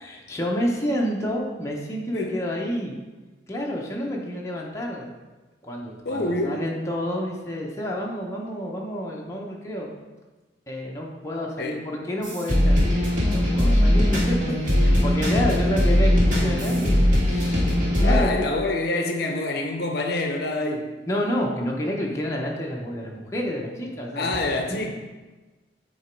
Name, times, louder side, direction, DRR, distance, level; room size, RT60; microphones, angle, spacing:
voice 1, 0.0-3.0 3.5-5.1 5.6-9.9 10.7-13.0 13.3-17.7 18.0-18.6 21.1-24.4, equal, 15° left, -2 dB, 0.7 m, -29 dB
voice 2, 6.0-6.6 11.6-11.8 17.9-20.9 24.2-24.9, left 2 dB, 60° left, 3 dB, 0.6 m, -26 dB
sound 1, 12.2-18.2, equal, 45° right, 1.8 m, -20 dB
7.9 x 3.0 x 4.5 m, 1.2 s
head